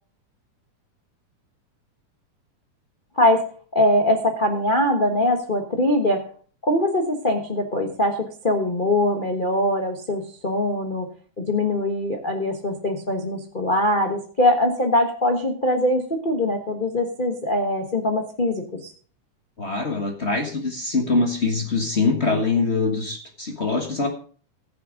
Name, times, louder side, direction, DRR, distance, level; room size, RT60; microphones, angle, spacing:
voice 1, 3.7-6.2 6.6-11.1 11.4-18.8, left 1 dB, 60° left, 2 dB, 0.5 m, -22 dB
voice 2, 19.6-24.1, left 3 dB, 45° left, 3 dB, 0.8 m, -23 dB
15.0 x 7.2 x 5.2 m, 0.43 s
omnidirectional pair, 3.6 m